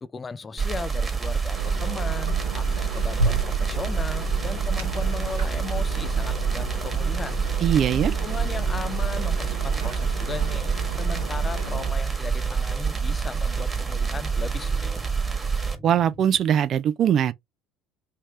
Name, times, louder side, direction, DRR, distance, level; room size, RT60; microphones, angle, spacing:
voice 1, 0.0-7.4 8.0-14.9, left 4 dB, 25° left, 0.4 m, -37 dB
sound 1, 0.6-15.8, right 5 dB, 20° right, 1.3 m, -27 dB
sound 2, 1.5-11.9, right 4 dB, 80° right, 1.1 m, -33 dB
sound 3, 4.3-16.5, right 1 dB, 5° right, 1.1 m, -46 dB
voice 2, 7.6-8.1 15.8-17.3, right 9 dB, 50° right, 0.4 m, -21 dB
3.3 x 3.2 x 3.0 m
figure-of-eight pair, 60°, 0 cm